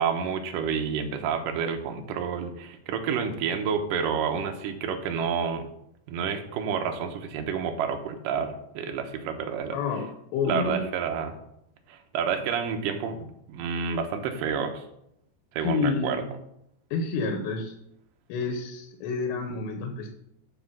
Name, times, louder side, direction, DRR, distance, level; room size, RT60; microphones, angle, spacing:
voice 1, 0.0-5.6 6.1-9.8 10.4-11.4 11.9-14.8 15.5-16.2, right 6 dB, 80° right, 4 dB, 2.0 m, -29 dB
voice 2, 9.7-10.1 10.3-10.8 15.6-16.3 16.9-17.7 18.3-20.1, left 4 dB, 85° left, 4 dB, 3.1 m, -29 dB
11.5 x 4.4 x 5.9 m, 0.77 s
omnidirectional pair, 5.1 m